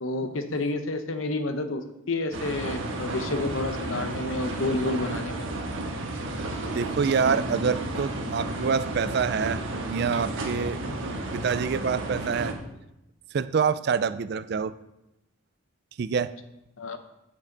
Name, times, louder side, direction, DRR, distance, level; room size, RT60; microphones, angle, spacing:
voice 1, 0.0-1.8 2.1-5.5 16.8-17.0, left 2 dB, 70° left, 9 dB, 0.8 m, -29 dB
sound 1, 2.3-12.5, right 2 dB, 70° right, 1.3 m, -32 dB
voice 2, 6.7-10.8 11.3-12.5 13.3-14.8 16.0-16.3, right 6 dB, 50° right, 14 dB, 0.3 m, -26 dB
9.4 x 6.4 x 3.9 m, 0.89 s
head